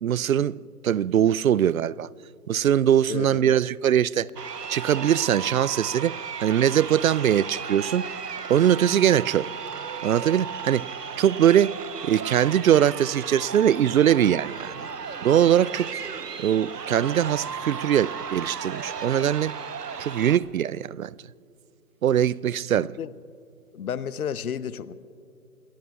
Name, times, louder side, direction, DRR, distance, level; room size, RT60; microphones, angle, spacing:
voice 1, 0.0-0.5 0.8-2.1 2.5-4.3 4.7-8.1 8.5-9.5 10.0-10.9 11.2-11.8 12.0-14.9 15.2-15.9 16.4-19.5 20.0-21.1 22.0-22.9, right 10 dB, 65° right, 0.5 m, -21 dB
Crowd, 4.3-20.4, right 6 dB, 90° right, 0.9 m, -35 dB
voice 2, 22.7-23.1 23.7-24.9, left 8 dB, 65° left, 0.8 m, -32 dB
29.0 x 20.0 x 2.3 m
figure-of-eight pair, 145°, 47 cm